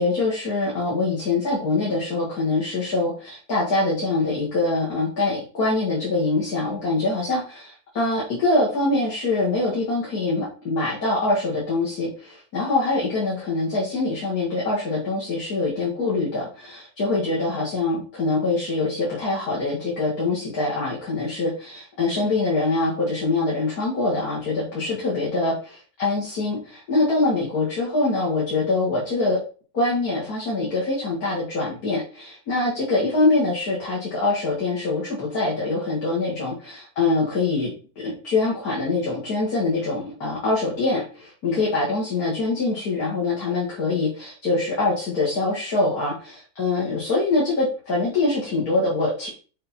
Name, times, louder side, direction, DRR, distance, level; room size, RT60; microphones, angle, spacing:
voice 1, 0.0-29.4 29.7-37.7 38.0-49.3, left 2 dB, 75° left, -6 dB, 2.6 m, -24 dB
7.0 x 4.2 x 4.3 m, 0.37 s
omnidirectional pair, 1.6 m